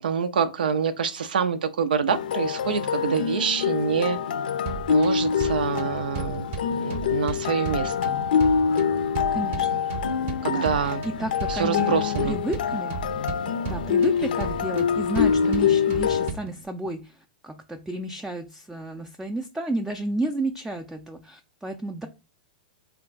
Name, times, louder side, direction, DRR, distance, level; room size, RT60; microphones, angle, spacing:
voice 1, 0.0-4.2 4.9-8.1 10.4-11.0 11.5-12.4, right 6 dB, 75° right, 9 dB, 0.5 m, -26 dB
sound 1, 2.1-16.3, left 7 dB, 70° left, 0.5 m, -25 dB
sound 2, 4.7-16.7, right 5 dB, 40° right, 0.7 m, -36 dB
voice 2, 9.3-9.8 10.5-11.9 12.2-13.0 13.6-22.1, right 1 dB, 5° right, 6 dB, 0.4 m, -32 dB
3.8 x 2.3 x 3.7 m, 0.30 s
hypercardioid pair, 110°, 5 cm